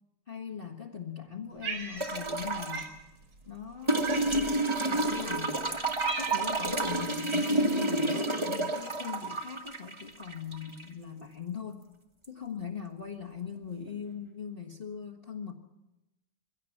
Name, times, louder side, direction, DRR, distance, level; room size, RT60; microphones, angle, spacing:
voice 1, 0.3-2.9 3.4-5.7 6.1-11.8 12.3-15.5, left 7 dB, 30° left, 1 dB, 1.6 m, -40 dB
Cat, 1.6-2.4 2.7-3.0 4.0-4.5 5.2-5.3 5.7-6.7, right 4 dB, 75° right, 4.2 m, -37 dB
sound 1, 2.0-2.8 3.9-10.9 12.2-12.3, right 2 dB, 15° right, 1.4 m, -30 dB
23.0 x 16.5 x 7.2 m, 0.95 s
omnidirectional pair, 2.3 m